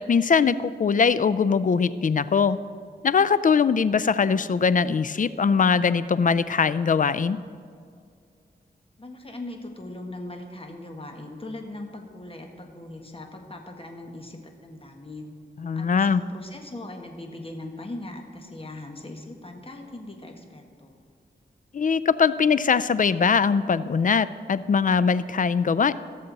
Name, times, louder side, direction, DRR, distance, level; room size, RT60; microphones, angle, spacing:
voice 1, 0.0-2.6 3.0-7.4 15.6-16.2 21.7-25.9, left 5 dB, 45° left, 16 dB, 0.4 m, -21 dB
voice 2, 9.0-15.3 15.7-21.0, left 1 dB, 30° left, 3 dB, 1.5 m, -40 dB
16.0 x 6.8 x 4.1 m, 2.2 s
cardioid pair, 60°, 19 cm